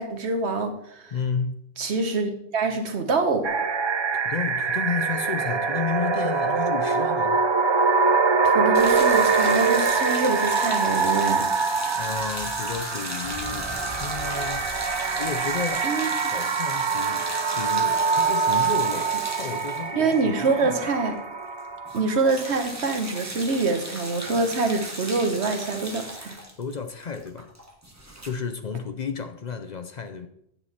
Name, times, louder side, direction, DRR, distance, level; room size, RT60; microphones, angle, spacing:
voice 1, 0.0-1.1 1.8-3.5 8.4-11.4 15.8-16.1 19.9-21.1 21.9-26.4, right 3 dB, 80° right, 5 dB, 1.4 m, -25 dB
voice 2, 1.1-1.6 4.2-7.4 11.9-13.8 14.0-15.9 16.3-20.9 26.6-27.5 28.2-30.3, left 6 dB, 50° left, 8 dB, 0.6 m, -32 dB
sound 1, 3.4-22.3, right 5 dB, 40° right, 0.4 m, -24 dB
sound 2, 8.7-21.1 21.4-21.6 21.9-28.3, right 1 dB, 15° right, 1.2 m, -37 dB
sound 3, 11.8-16.1, left 2 dB, 15° left, 1.2 m, -43 dB
8.9 x 7.8 x 4.2 m, 0.74 s
omnidirectional pair, 1.1 m